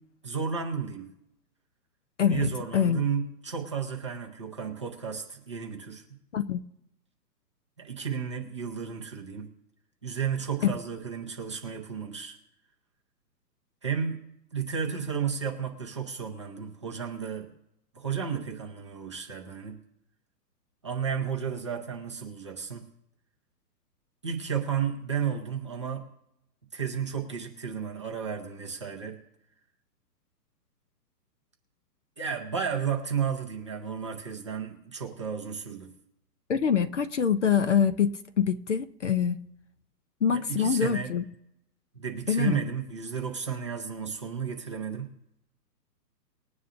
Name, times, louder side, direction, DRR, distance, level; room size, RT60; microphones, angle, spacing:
voice 1, 0.2-1.1 2.3-6.0 7.8-9.5 10.0-12.4 13.8-14.2 14.5-17.5 17.9-19.8 20.8-22.9 24.2-26.1 26.7-29.2 32.2-35.9 40.3-41.2 42.0-45.1, right 7 dB, 20° right, 0.7 m, -33 dB
voice 2, 2.2-3.0 6.3-6.6 10.6-10.8 36.5-39.4 40.2-41.2 42.3-42.6, left 7 dB, 45° left, 0.6 m, -25 dB
20.5 x 9.5 x 2.6 m
hypercardioid pair, 170°, 50 cm